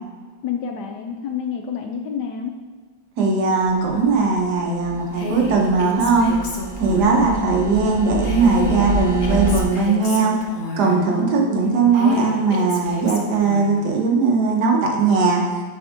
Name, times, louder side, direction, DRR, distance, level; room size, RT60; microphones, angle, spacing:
voice 1, 0.4-2.5 7.2-7.6 11.1-11.9, left 6 dB, 70° left, 3 dB, 1.0 m, -29 dB
voice 2, 3.2-6.3 6.8-10.3 10.8-15.4, right 4 dB, 65° right, 0 dB, 1.4 m, -19 dB
sound 1, 3.6-9.6, right 3 dB, 40° right, 0.7 m, -28 dB
Female speech woman speaking, 5.1-7.3 8.2-11.1 11.9-13.8, left 1 dB, 55° left, 0.6 m, -31 dB
7.0 x 3.6 x 4.9 m, 1.5 s
omnidirectional pair, 2.1 m